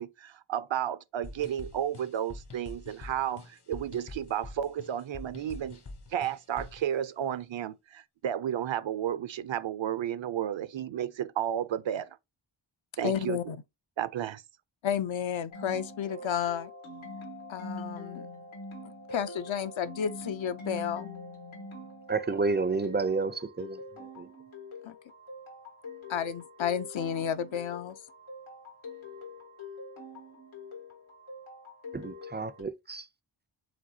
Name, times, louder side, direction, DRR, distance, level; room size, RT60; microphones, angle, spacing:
voice 1, 0.0-5.8 6.1-12.1 13.0-13.4 14.0-14.4, right 10 dB, 70° right, 0.5 m, -32 dB
sound 1, 1.2-6.9, left 2 dB, 55° left, 1.0 m, -46 dB
voice 2, 13.0-13.6 14.8-16.7 17.5-18.3 18.8-21.1 24.8-25.0 26.1-28.0, left 8 dB, 75° left, 0.6 m, -32 dB
sound 2, 15.5-32.6, left 2 dB, 90° left, 1.5 m, -44 dB
voice 3, 22.1-23.8 24.2-24.3 31.9-33.1, right 4 dB, 25° right, 0.4 m, -30 dB
5.1 x 3.8 x 2.7 m
wide cardioid pair, 80°, 47 cm